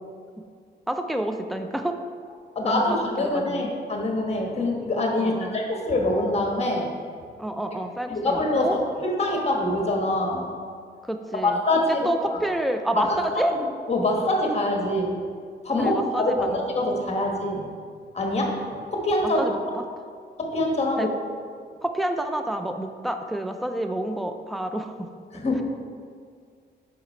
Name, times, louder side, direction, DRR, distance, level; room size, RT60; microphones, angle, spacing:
voice 1, 0.9-2.0 2.6-3.7 5.2-5.6 7.4-8.8 11.0-11.6 11.9-13.6 15.8-16.6 19.2-19.9 21.0-21.1 21.8-25.1, right 1 dB, ahead, 6 dB, 0.3 m, -29 dB
voice 2, 2.5-6.9 8.1-10.5 11.4-12.0 12.3-12.4 13.0-13.1 13.9-15.2 15.6-17.6 18.1-18.6 18.9-19.4 20.4-21.1 25.3-25.6, left 1 dB, 35° left, 1 dB, 1.1 m, -24 dB
5.9 x 4.9 x 4.3 m, 2.1 s
cardioid pair, 105°, 18 cm